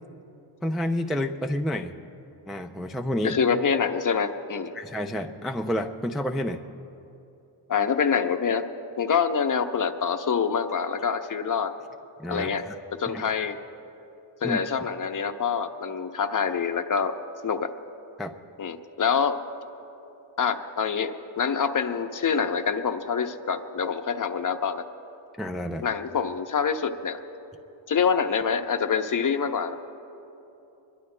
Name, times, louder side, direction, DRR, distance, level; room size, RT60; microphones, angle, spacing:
voice 1, 0.6-2.0 2.5-3.4 4.7-6.6 12.2-12.8 13.1-13.2 14.4-14.6 18.2-18.4 25.4-25.9, left 1 dB, ahead, 3 dB, 0.3 m, -29 dB
voice 2, 3.2-4.7 7.7-8.6 9.0-11.7 12.3-12.6 13.0-13.6 14.4-17.1 17.4-17.7 18.6-19.4 20.4-24.8 25.8-27.2 27.9-29.8, left 6 dB, 40° left, 7 dB, 0.8 m, -26 dB
25.0 x 21.5 x 2.2 m, 2.9 s
wide cardioid pair, 125°, 50 cm